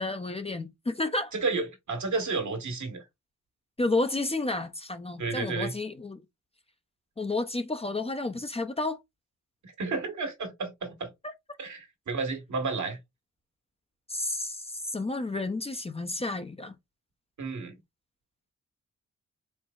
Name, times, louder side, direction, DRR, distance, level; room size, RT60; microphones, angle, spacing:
voice 1, 0.0-1.3 3.8-6.2 7.2-9.0 11.2-11.3 14.1-16.8, left 2 dB, 20° left, 0.5 m, -31 dB
voice 2, 1.3-3.0 5.2-5.7 9.6-11.1 11.6-13.0 17.4-17.7, right 4 dB, 70° right, 1.5 m, -31 dB
4.5 x 3.3 x 2.4 m
cardioid pair, 75°, 30 cm